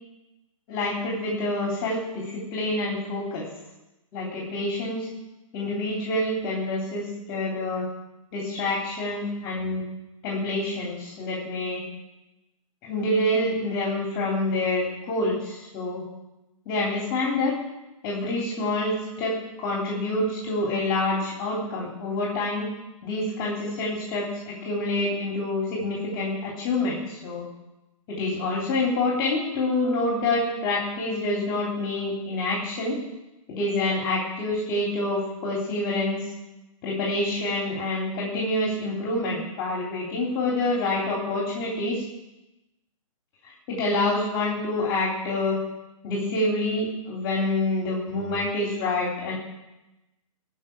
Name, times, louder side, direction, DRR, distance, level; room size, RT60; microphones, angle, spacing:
voice 1, 0.7-3.5 4.1-5.1 5.5-7.9 8.3-9.8 10.2-11.8 12.8-16.0 16.7-17.6 18.0-22.7 23.0-27.4 28.1-33.0 33.5-36.2 36.8-42.0 43.4-45.6 46.0-49.3, left 2 dB, 25° left, -2 dB, 3.5 m, -27 dB
18.0 x 6.4 x 8.7 m, 0.99 s
hypercardioid pair, 155°, 18 cm